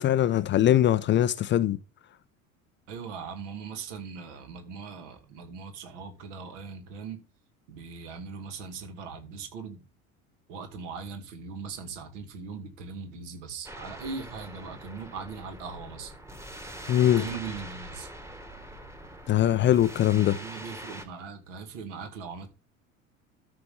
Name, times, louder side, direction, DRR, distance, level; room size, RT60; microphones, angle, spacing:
voice 1, 0.0-1.8 16.9-17.2 19.3-20.4, left 12 dB, 30° left, 0.6 m, -22 dB
voice 2, 2.9-7.2 7.7-9.8 10.5-16.1 17.0-18.1 20.1-22.5, right 5 dB, 60° right, 2.2 m, -40 dB
sound 1, 13.6-21.0, right 1 dB, 5° right, 1.6 m, -43 dB
13.0 x 5.9 x 3.6 m
figure-of-eight pair, 70°, 41 cm